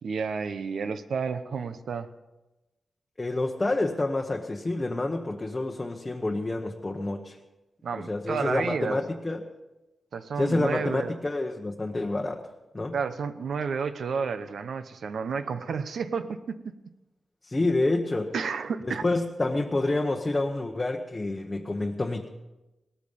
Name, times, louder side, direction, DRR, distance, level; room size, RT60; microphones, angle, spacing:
voice 1, 0.0-2.1 7.8-9.0 10.1-11.1 12.9-16.6 18.3-19.0, right 5 dB, 85° right, 11 dB, 0.9 m, -31 dB
voice 2, 3.2-7.4 8.0-9.5 10.4-12.5 12.7-12.9 17.4-18.3 19.0-22.3, left 2 dB, 20° left, 1 dB, 0.9 m, -28 dB
18.5 x 14.0 x 5.4 m, 1.0 s
wide cardioid pair, 170°, 0 cm